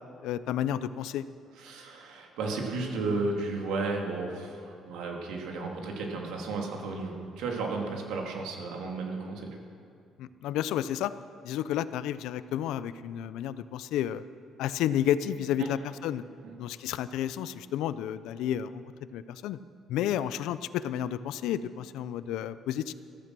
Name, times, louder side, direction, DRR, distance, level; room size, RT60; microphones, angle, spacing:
voice 1, 0.2-1.2 10.2-11.1 11.4-14.2 14.6-16.2 16.6-18.8 19.1-19.6 19.9-22.9, left 11 dB, 85° left, 14 dB, 0.5 m, -31 dB
voice 2, 1.6-9.6 15.6-15.7 16.4-16.5, right 3 dB, 80° right, 1 dB, 2.6 m, -33 dB
15.0 x 14.0 x 6.1 m, 2.3 s
cardioid pair, 180°, 0 cm